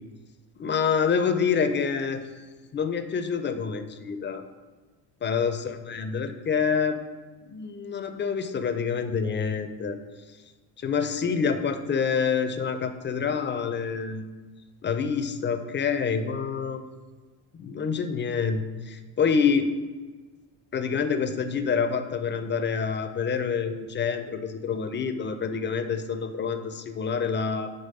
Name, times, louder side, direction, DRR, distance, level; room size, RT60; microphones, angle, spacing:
voice 1, 0.6-2.2 2.7-4.4 5.2-7.0 7.5-10.0 10.8-14.3 14.8-16.8 17.6-19.7 20.7-27.7, left 6 dB, 25° left, 9 dB, 0.4 m, -27 dB
5.2 x 3.3 x 5.4 m, 1.3 s
supercardioid pair, 90°, 45 cm